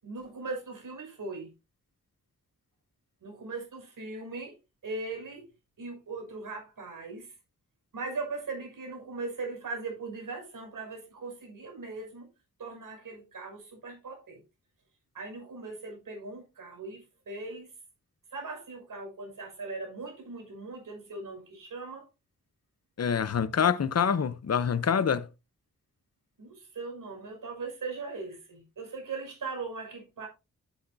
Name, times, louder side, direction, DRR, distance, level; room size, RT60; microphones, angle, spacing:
voice 1, 0.0-1.5 3.2-4.5 4.8-5.5 5.8-7.3 7.9-12.3 12.6-14.4 15.1-17.7 18.3-22.1 26.4-30.3, right 3 dB, 90° right, 6.4 m, -39 dB
voice 2, 23.0-25.3, left 7 dB, 50° left, 0.8 m, -26 dB
10.0 x 10.0 x 2.8 m
wide cardioid pair, 75°, 31 cm